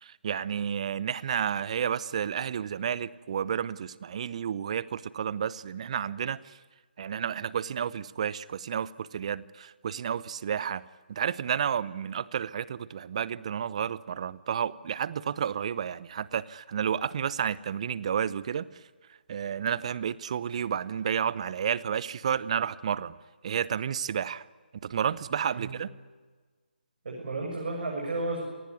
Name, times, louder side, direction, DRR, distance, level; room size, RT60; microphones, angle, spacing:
voice 1, 0.0-6.5 7.0-10.8 11.1-18.7 19.3-23.1 23.4-24.4 24.8-25.9, right 8 dB, 40° right, 20 dB, 0.8 m, -31 dB
voice 2, 27.0-28.4, right 2 dB, 55° right, -1 dB, 6.9 m, -33 dB
26.5 x 19.0 x 9.5 m, 1.4 s
figure-of-eight pair, 145°, 6 cm